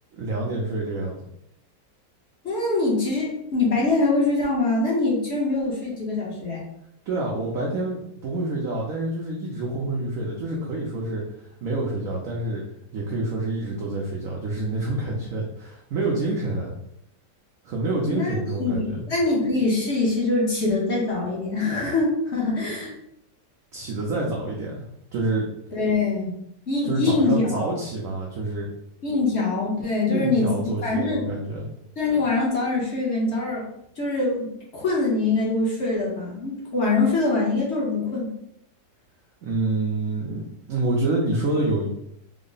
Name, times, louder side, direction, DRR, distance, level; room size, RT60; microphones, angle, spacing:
voice 1, 0.1-1.1 7.1-11.2 11.6-12.6 12.9-16.8 17.6-18.9 23.7-24.8 25.1-25.5 26.8-28.7 30.1-31.7 39.4-41.9, right 2 dB, 65° right, -2 dB, 0.9 m, -27 dB
voice 2, 2.4-6.7 18.1-18.3 18.6-22.9 25.7-26.4 26.7-27.6 29.0-31.3 32.0-33.7 34.0-34.5 34.7-38.3, left 3 dB, 50° left, -4 dB, 1.0 m, -23 dB
3.6 x 2.1 x 3.8 m, 0.76 s
omnidirectional pair, 1.9 m